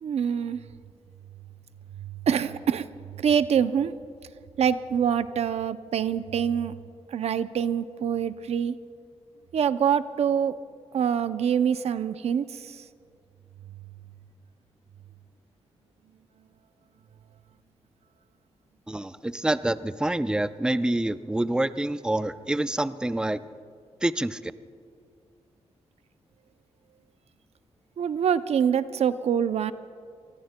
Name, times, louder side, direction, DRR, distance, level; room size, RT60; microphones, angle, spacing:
voice 1, 0.0-0.6 2.0-2.9 3.2-3.9 4.6-6.7 7.1-8.8 9.5-10.6 10.9-12.8 28.0-29.7, right 8 dB, 70° right, 13 dB, 0.5 m, -25 dB
voice 2, 18.9-23.4 24.0-24.5, right 1 dB, 5° right, 12 dB, 0.5 m, -27 dB
26.0 x 20.5 x 2.2 m, 2.3 s
cardioid pair, 70°, 11 cm